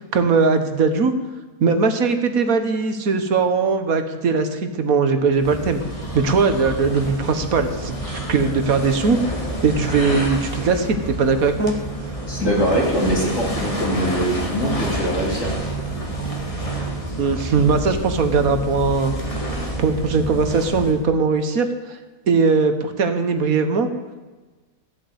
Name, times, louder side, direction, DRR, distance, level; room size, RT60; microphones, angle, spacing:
voice 1, 0.1-1.1 1.6-5.8 6.1-9.2 9.6-11.8 17.2-19.1 19.8-22.0 22.3-23.9, right 4 dB, 65° right, 8 dB, 1.7 m, -20 dB
sound 1, 5.3-21.1, right 1 dB, 20° left, 2.0 m, -28 dB
voice 2, 12.3-15.5, equal, 50° left, -4 dB, 3.6 m, -22 dB
15.0 x 8.4 x 8.1 m, 1.2 s
omnidirectional pair, 1.7 m